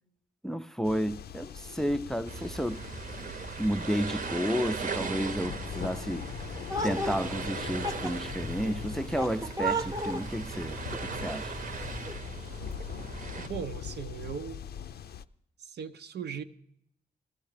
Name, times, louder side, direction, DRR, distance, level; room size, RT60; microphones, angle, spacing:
voice 1, 0.4-2.8 3.6-6.3 6.8-11.5, equal, 5° left, 0.4 m, -32 dB
sound 1, 0.8-15.2, left 9 dB, 70° left, 0.5 m, -42 dB
sound 2, 2.3-13.5, right 5 dB, 55° right, 0.9 m, -39 dB
sound 3, 6.7-12.1, right 1 dB, 20° right, 0.8 m, -36 dB
voice 2, 13.4-14.6 15.6-16.4, right 7 dB, 85° right, 0.7 m, -38 dB
15.0 x 14.0 x 5.0 m
cardioid pair, 90°, 17 cm